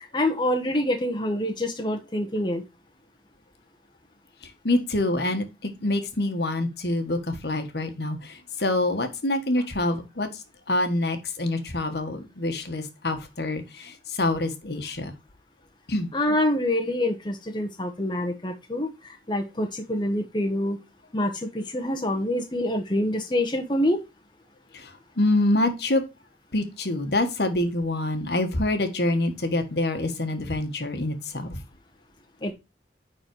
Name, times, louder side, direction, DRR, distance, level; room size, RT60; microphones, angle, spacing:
voice 1, 0.0-2.6 16.1-20.8 21.1-24.0 32.4-32.5, left 1 dB, 25° left, 1.1 m, -26 dB
voice 2, 4.6-10.3 10.7-15.1 15.9-16.1 24.7-26.0 26.5-31.6, left 2 dB, 65° left, 1.4 m, -26 dB
9.5 x 4.2 x 4.6 m
head